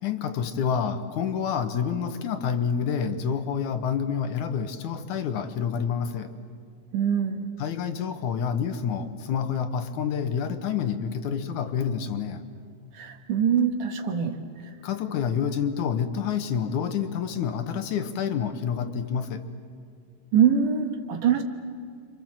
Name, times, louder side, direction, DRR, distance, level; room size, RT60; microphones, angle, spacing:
voice 1, 0.0-6.3 7.6-12.4 14.8-19.5, left 7 dB, 70° left, 8 dB, 2.5 m, -28 dB
voice 2, 6.9-7.5 12.9-14.4 20.3-21.4, right 8 dB, 70° right, 5 dB, 3.0 m, -23 dB
29.5 x 26.0 x 7.5 m, 2.2 s
omnidirectional pair, 3.9 m